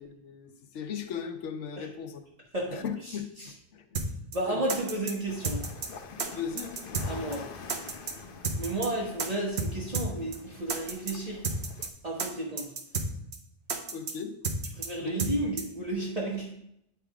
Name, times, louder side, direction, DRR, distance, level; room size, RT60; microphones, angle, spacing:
voice 1, 0.0-2.2 2.7-3.3 3.7-4.0 4.5-4.6 6.3-6.8 13.9-14.4 15.0-15.2, left 7 dB, 80° left, 7 dB, 1.1 m, -37 dB
voice 2, 2.5-3.5 4.3-5.6 7.0-7.5 8.5-11.6 12.0-12.7 14.7-16.5, right 1 dB, 35° right, -5 dB, 1.2 m, -33 dB
sound 1, 4.0-4.1 4.3-4.4 4.7-5.1 5.4-5.9 6.2-6.3 6.6-7.1 7.3-7.4 7.7-8.1 8.4-8.9 9.2-9.3 9.6-9.7 9.9-10.1 10.3-10.4 10.7-11.1 11.4-11.9 12.2-12.3 12.6-13.1 13.3-13.4 13.7-14.1 14.4-14.9 15.2-15.3 15.6-15.7, right 4 dB, 65° right, 1.1 m, -31 dB
sound 2, 5.3-11.9, left 5 dB, 55° left, 0.8 m, -46 dB
9.5 x 3.5 x 4.7 m, 0.76 s
omnidirectional pair, 1.2 m